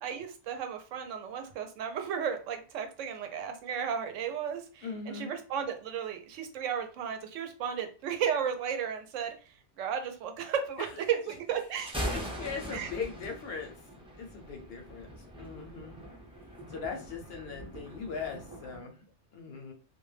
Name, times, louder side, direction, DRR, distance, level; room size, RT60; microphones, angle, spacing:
voice 1, 0.0-9.3 9.8-12.2 12.7-12.9, right 8 dB, 80° right, 6 dB, 0.9 m, -34 dB
voice 2, 4.8-5.3 10.8-11.0 12.0-13.7 14.2-15.1 15.4-16.0 16.7-19.0 19.3-19.7, left 5 dB, 65° left, 3 dB, 0.7 m, -39 dB
Thunder, 11.6-18.8, equal, 5° right, 0.5 m, -41 dB
2.3 x 2.1 x 3.1 m, 0.36 s
omnidirectional pair, 1.3 m